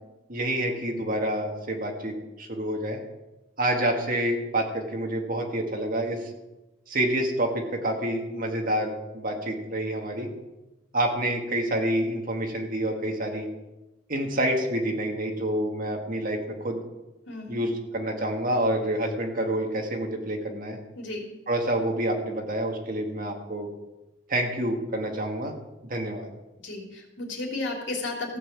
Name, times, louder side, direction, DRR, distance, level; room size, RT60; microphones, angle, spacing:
voice 1, 0.3-3.0 3.6-6.2 6.9-10.3 10.9-13.5 14.1-16.8 17.5-20.8 21.5-23.7 24.3-25.6 25.8-26.3, right 1 dB, 50° right, 2 dB, 1.9 m, -28 dB
voice 2, 17.3-17.6 20.9-21.2 26.6-28.4, left 2 dB, 70° left, -1 dB, 3.1 m, -33 dB
15.0 x 5.7 x 7.5 m, 1.0 s
head